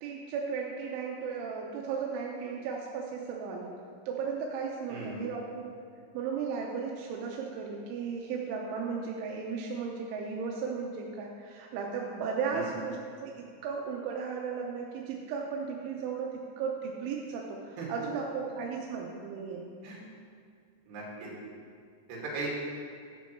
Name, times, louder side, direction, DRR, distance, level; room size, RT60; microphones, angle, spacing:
voice 1, 0.0-3.8 4.1-5.7 6.1-19.7, right 5 dB, 90° right, -1 dB, 3.3 m, -35 dB
voice 2, 20.9-21.3 22.1-22.5, right 3 dB, 65° right, -5 dB, 4.3 m, -37 dB
11.5 x 8.0 x 4.6 m, 2.3 s
omnidirectional pair, 5.3 m